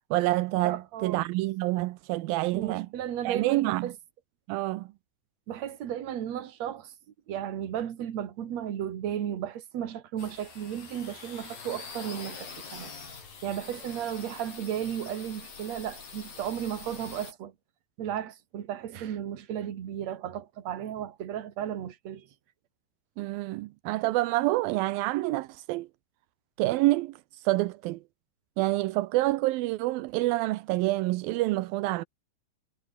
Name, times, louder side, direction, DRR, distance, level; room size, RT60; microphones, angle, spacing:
voice 1, 0.1-2.9 3.2-3.9 4.5-4.9 23.2-25.9 26.6-27.2 27.4-28.0 28.6-32.0, right 18 dB, 85° right, 2.4 m, -27 dB
voice 2, 0.6-1.3 2.5-3.9 5.5-6.9 7.3-12.9 13.4-17.5 18.0-22.3, right 10 dB, 50° right, 2.8 m, -34 dB
sound 1, 10.2-17.3, left 5 dB, 65° left, 7.9 m, -44 dB
omnidirectional pair, 4.3 m